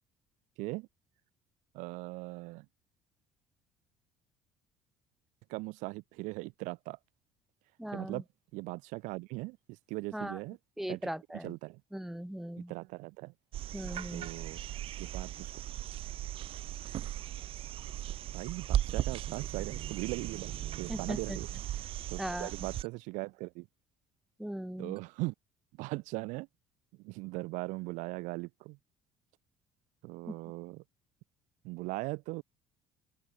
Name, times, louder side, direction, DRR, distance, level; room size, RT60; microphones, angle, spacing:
voice 1, 1.7-2.6 5.5-7.0 7.9-8.2 8.5-10.6 10.9-11.8 12.7-13.3 14.1-14.6 15.0-15.5 18.3-20.5 20.8-23.7 24.8-25.3 25.8-26.5 27.0-28.8 30.0-30.8 31.6-32.4, right 24 dB, 85° right, 1.1 m, -39 dB
voice 2, 7.8-8.2 10.1-10.4 10.8-11.5 11.9-12.7 13.7-14.3 20.9-21.4 22.2-22.5 24.4-24.9, right 1 dB, ahead, 3.0 m, -38 dB
sound 1, 13.5-22.9 25.0-25.1, right 12 dB, 50° right, 0.6 m, -37 dB
open air
cardioid pair, 130°, 12 cm